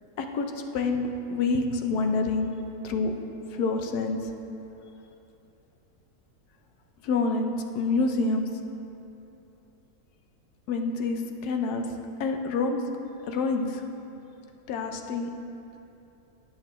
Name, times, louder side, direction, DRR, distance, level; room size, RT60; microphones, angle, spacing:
voice 1, 0.2-2.5 2.8-3.1 3.5-4.2 7.0-8.5 10.7-11.9 12.2-12.8 13.3-13.8 14.7-15.3, left 3 dB, 85° left, 5 dB, 1.3 m, -27 dB
18.5 x 6.5 x 3.1 m, 2.9 s
omnidirectional pair, 1.6 m